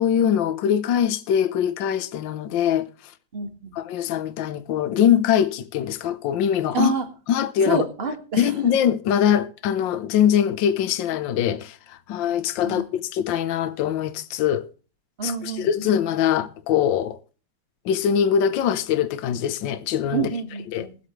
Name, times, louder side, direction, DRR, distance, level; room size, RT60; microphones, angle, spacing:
voice 1, 0.0-2.9 3.7-6.9 7.3-7.8 8.4-14.6 15.2-17.2 17.8-20.3 20.7-20.9, left 9 dB, 65° left, 1.5 m, -22 dB
voice 2, 3.3-3.8 6.7-7.1 7.6-8.5 12.6-12.9 15.2-15.9 20.1-21.0, right 4 dB, 30° right, 1.9 m, -28 dB
21.5 x 8.3 x 3.2 m
omnidirectional pair, 2.4 m